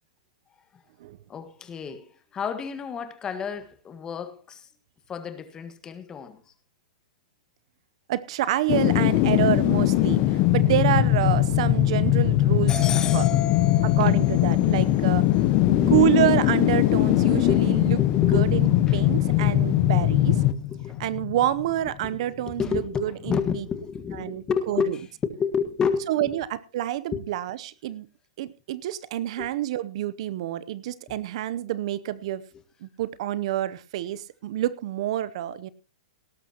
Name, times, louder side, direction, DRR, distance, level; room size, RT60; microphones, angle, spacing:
voice 1, 1.3-4.7 5.1-6.5 12.7-16.1 17.5-17.6 18.0-19.6 20.4-20.6 20.8-21.0 22.0-22.2 22.5-25.1 25.4-26.4 27.1-27.2 29.4-29.5, left 6 dB, 20° left, 1.6 m, -31 dB
voice 2, 8.1-12.7 13.1-13.2 14.0-15.2 15.9-18.0 18.3-20.4 21.0-23.6 24.2-25.0 26.1-28.1 28.4-32.4 32.8-35.7, right 13 dB, 55° right, 0.7 m, -27 dB
sound 1, 8.7-21.7 22.1-22.2, left 14 dB, 40° left, 0.8 m, -21 dB
18.0 x 12.5 x 2.9 m
hypercardioid pair, 140°, 4 cm